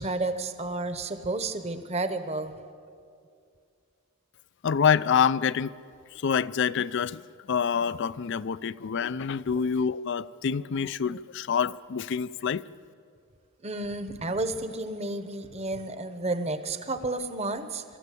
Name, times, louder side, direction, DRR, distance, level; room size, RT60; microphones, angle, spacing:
voice 1, 0.0-2.6 13.6-17.8, right 2 dB, 30° right, 1.0 m, -31 dB
voice 2, 4.6-5.7 6.1-7.2 7.5-12.6, left 7 dB, 55° left, 0.4 m, -26 dB
22.5 x 13.5 x 8.4 m
head